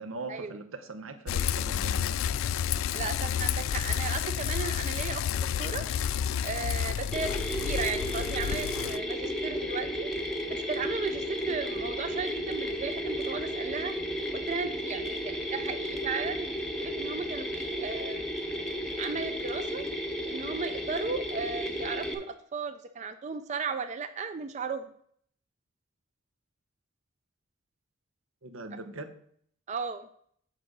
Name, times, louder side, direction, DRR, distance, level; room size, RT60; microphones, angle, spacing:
voice 1, 0.0-2.2 28.4-29.2, right 3 dB, 85° right, 8 dB, 0.8 m, -41 dB
Bicycle, 1.3-9.0, left 8 dB, 80° left, 0.3 m, -30 dB
voice 2, 2.9-5.3 5.6-5.8 6.4-7.3 7.6-10.1 10.5-13.9 14.5-16.5 16.8-18.3 19.0-19.8 20.3-22.3 22.5-24.9 29.7-30.1, right 5 dB, 35° right, 9 dB, 0.4 m, -35 dB
Mechanisms, 7.1-22.1, equal, 5° left, 0.7 m, -33 dB
7.4 x 3.8 x 6.2 m, 0.63 s
head